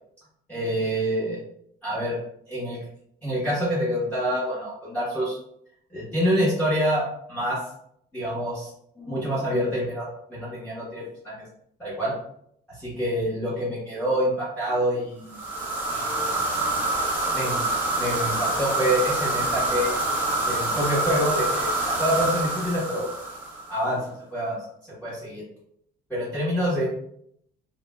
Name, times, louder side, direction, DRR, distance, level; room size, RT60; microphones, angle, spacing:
voice 1, 0.5-1.4 1.8-2.2 2.5-2.8 3.2-5.4 5.9-7.6 8.1-11.3 11.8-12.1 12.7-15.4 15.9-16.3 17.3-17.6 17.9-19.9 20.4-23.1 23.7-24.6 25.0-25.4 26.1-26.9, equal, 10° left, -9 dB, 1.4 m, -26 dB
sound 1, 15.3-23.8, right 2 dB, 10° right, 1.3 m, -26 dB
3.7 x 2.5 x 2.3 m, 0.71 s
cardioid pair, 110°, 17 cm